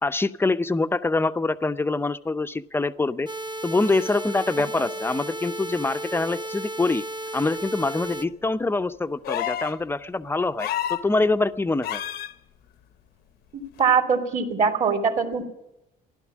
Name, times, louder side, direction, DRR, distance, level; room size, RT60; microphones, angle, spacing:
voice 1, 0.0-3.3 3.6-7.0 7.3-12.0, left 3 dB, 15° left, 11 dB, 0.6 m, -25 dB
sound 1, 3.3-8.3, right 1 dB, 25° right, 1.0 m, -34 dB
sound 2, 9.2-9.8 10.6-11.1 11.8-12.3 13.8-13.9, left 11 dB, 70° left, 0.8 m, -29 dB
voice 2, 13.5-15.4, right 6 dB, 45° right, 4 dB, 2.8 m, -22 dB
15.5 x 12.0 x 7.3 m, 0.88 s
cardioid pair, 110°, 17 cm